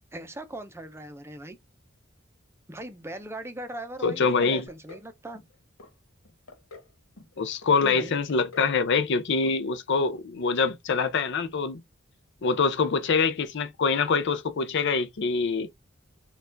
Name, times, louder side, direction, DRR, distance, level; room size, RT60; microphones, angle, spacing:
voice 1, 0.1-1.6 2.7-5.4 7.8-8.2, right 1 dB, 15° right, 0.6 m, -39 dB
voice 2, 4.0-4.6 7.4-11.8 12.4-15.7, left 4 dB, 60° left, 0.5 m, -25 dB
sound 1, 4.7-5.1 5.3-5.9 6.2-6.9 7.2-7.7 8.1-8.7 9.0-9.2 9.4-9.6 9.9-10.0, left 3 dB, 90° left, 1.2 m, -48 dB
4.4 x 2.4 x 3.8 m
head